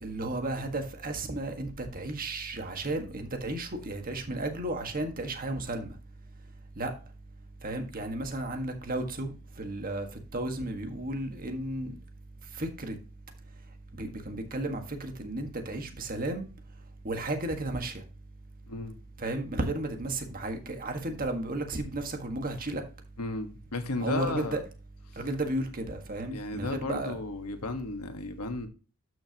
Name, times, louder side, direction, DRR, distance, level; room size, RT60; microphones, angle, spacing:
voice 1, 0.0-5.9 6.8-6.9 7.6-10.1 10.3-11.9 12.6-13.0 14.0-16.5 17.1-17.9 19.2-22.8 24.0-24.6 25.2-27.2, right 2 dB, 40° right, 1.6 m, -33 dB
voice 2, 23.2-24.6 25.1-25.2 26.3-28.7, left 2 dB, 90° left, 1.4 m, -34 dB
12.0 x 6.3 x 2.9 m
head